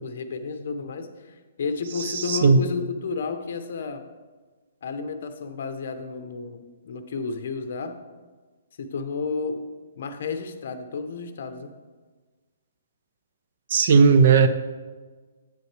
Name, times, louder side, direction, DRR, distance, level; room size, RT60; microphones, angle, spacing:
voice 1, 0.0-4.0 4.8-8.0 8.8-9.6 10.0-11.7, left 4 dB, 50° left, 8 dB, 0.8 m, -32 dB
voice 2, 2.0-2.6 13.7-14.5, right 5 dB, 40° right, 10 dB, 0.6 m, -17 dB
9.6 x 8.2 x 3.3 m, 1.4 s
hypercardioid pair, 175°, 0 cm